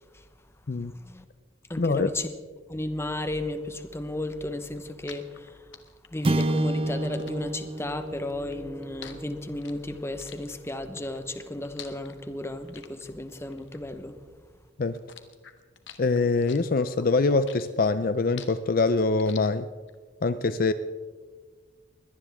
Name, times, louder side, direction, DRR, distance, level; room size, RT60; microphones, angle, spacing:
voice 1, 0.8-1.2 1.7-2.3 2.7-5.6 6.1-14.2, left 1 dB, 15° left, 9 dB, 1.0 m, -34 dB
voice 2, 1.8-2.1 14.8-15.0 16.0-19.7 20.2-20.7, left 3 dB, 50° left, 13 dB, 0.5 m, -24 dB
sound 1, 4.7-14.5 14.8-20.0, left 9 dB, 75° left, 1.4 m, -48 dB
sound 2, 6.2-10.7, right 1 dB, 30° right, 0.5 m, -30 dB
22.5 x 17.5 x 3.5 m, 1.5 s
head